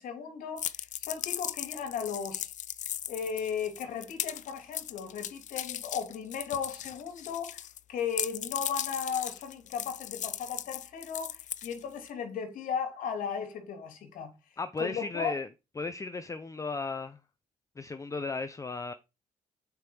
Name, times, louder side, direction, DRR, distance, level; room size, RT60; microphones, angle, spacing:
voice 1, 0.0-2.5 3.1-14.3 14.8-15.4, left 6 dB, 75° left, 3.2 m, -36 dB
sound 1, 0.6-7.8 8.1-12.1, left 11 dB, 60° left, 0.6 m, -37 dB
voice 2, 14.6-15.5 15.8-17.2 17.8-18.9, left 3 dB, 25° left, 0.7 m, -35 dB
8.1 x 5.3 x 6.2 m
cardioid pair, 95°, 14 cm